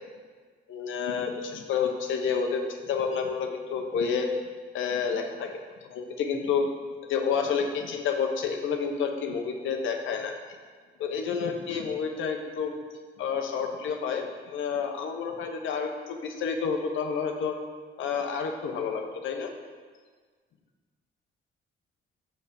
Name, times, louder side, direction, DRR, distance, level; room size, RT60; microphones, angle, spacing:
voice 1, 0.7-4.3 4.7-6.7 7.0-10.3 11.0-12.7 13.2-17.6 18.0-19.5, left 6 dB, 80° left, 4 dB, 1.1 m, -29 dB
6.8 x 6.8 x 7.0 m, 1.5 s
cardioid pair, 125°, 20 cm